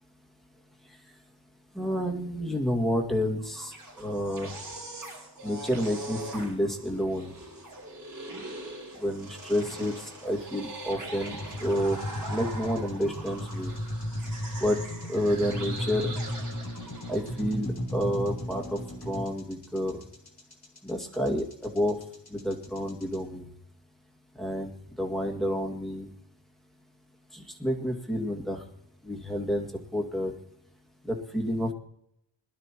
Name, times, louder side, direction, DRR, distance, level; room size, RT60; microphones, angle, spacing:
voice 1, 1.8-4.5 5.4-7.3 9.0-12.0 12.3-13.7 14.6-14.8 15.1-16.1 17.1-18.8 19.1-20.0 20.8-22.0 22.3-23.5 24.4-24.7 25.0-26.1 27.3-28.6 29.0-30.3 31.0-31.7, equal, ahead, 0 dB, 2.1 m, -29 dB
sound 1, 3.4-17.5, right 2 dB, 45° right, 5.5 m, -42 dB
sound 2, 11.3-23.2, left 1 dB, 50° left, 3.0 m, -35 dB
21.5 x 12.0 x 3.0 m, 0.75 s
wide cardioid pair, 105°, 46 cm